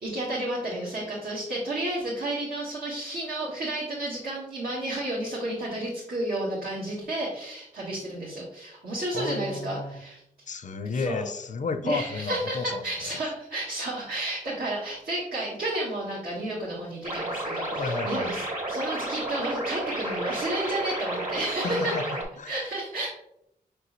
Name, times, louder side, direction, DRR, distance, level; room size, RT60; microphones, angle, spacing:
voice 1, 0.0-10.2 10.8-11.3 11.8-21.9 22.5-23.1, right 1 dB, 80° right, -7 dB, 1.3 m, -31 dB
voice 2, 9.1-10.0 10.5-12.8 13.1-13.2 17.7-18.3 21.6-22.6, left 4 dB, 55° left, 10 dB, 0.5 m, -32 dB
sound 1, 17.0-22.2, right 1 dB, 55° right, 1.5 m, -32 dB
5.4 x 3.2 x 3.0 m, 0.79 s
cardioid pair, 45°, 15 cm